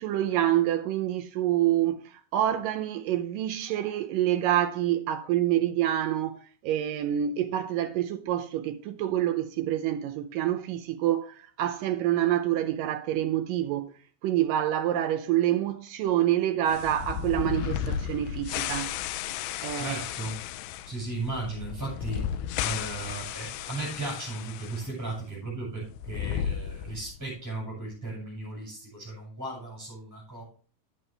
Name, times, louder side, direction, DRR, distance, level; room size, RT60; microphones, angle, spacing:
voice 1, 0.0-13.9 14.2-18.9 19.6-20.0, right 12 dB, 75° right, 2.1 m, -27 dB
sound 1, 16.7-24.9 25.1-25.2 25.9-27.2, left 9 dB, 85° left, 2.5 m, -34 dB
voice 2, 19.8-20.4 20.8-30.4, right 2 dB, 5° right, 6.0 m, -36 dB
11.0 x 9.1 x 3.3 m
omnidirectional pair, 4.4 m